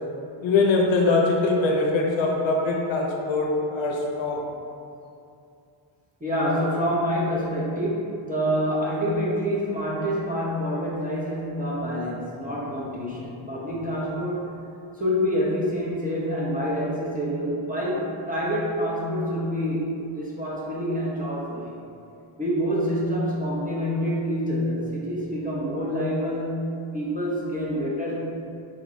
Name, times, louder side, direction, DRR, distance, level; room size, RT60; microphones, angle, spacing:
voice 1, 0.4-4.4, left 3 dB, 65° left, -1 dB, 0.6 m, -22 dB
voice 2, 6.2-14.5 15.0-21.7 22.4-28.2, equal, 20° right, -6 dB, 0.6 m, -27 dB
3.8 x 2.9 x 2.5 m, 2.6 s
wide cardioid pair, 110°, 49 cm